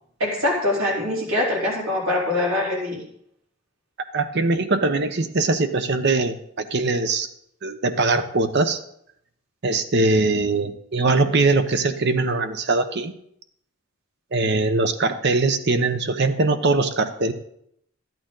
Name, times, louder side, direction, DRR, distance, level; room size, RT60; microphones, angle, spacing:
voice 1, 0.2-3.0, left 1 dB, 90° right, -3 dB, 3.7 m, -23 dB
voice 2, 4.1-7.3 7.6-8.8 9.6-13.1 14.3-17.3, right 3 dB, 55° right, 9 dB, 0.8 m, -21 dB
12.0 x 8.9 x 3.8 m, 0.72 s
head